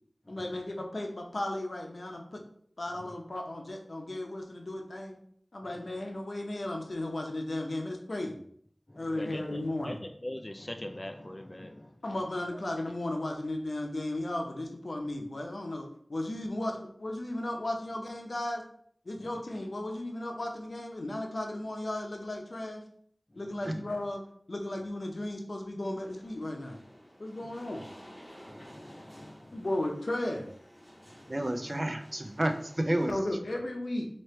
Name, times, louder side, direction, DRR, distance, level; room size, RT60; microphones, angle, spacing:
voice 1, 0.3-2.4 2.8-5.2 5.5-8.4 9.0-10.0 12.0-18.6 19.0-22.8 23.3-24.2 24.5-26.8 27.2-27.9 29.5-30.5 33.1-34.1, left 1 dB, 75° left, 2 dB, 0.7 m, -35 dB
voice 2, 8.9-12.0 12.5-12.6 19.2-19.3 23.3-23.7 27.4-27.5 28.5-29.6 31.1-31.7, left 1 dB, 30° left, 6 dB, 0.3 m, -43 dB
sound 1, 26.0-33.1, equal, 10° left, 1.3 m, -52 dB
voice 3, 31.3-33.2, right 1 dB, 40° right, 6 dB, 0.4 m, -30 dB
3.1 x 2.9 x 4.3 m, 0.64 s
wide cardioid pair, 50°, 0 cm